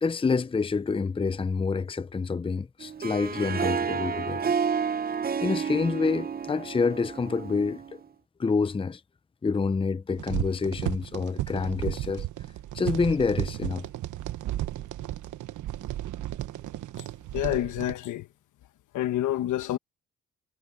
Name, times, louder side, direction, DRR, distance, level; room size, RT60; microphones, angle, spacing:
voice 1, 0.0-4.5 5.4-7.8 8.4-9.0 9.4-12.3 12.7-13.9, left 4 dB, 20° left, 0.7 m, -27 dB
Harp, 2.8-8.0, right 6 dB, 30° right, 0.7 m, -30 dB
sound 1, 10.1-17.9, right 14 dB, 75° right, 1.3 m, -34 dB
voice 2, 17.3-18.3 18.9-19.8, left 13 dB, 80° left, 1.4 m, -28 dB
cardioid pair, 90°, 30 cm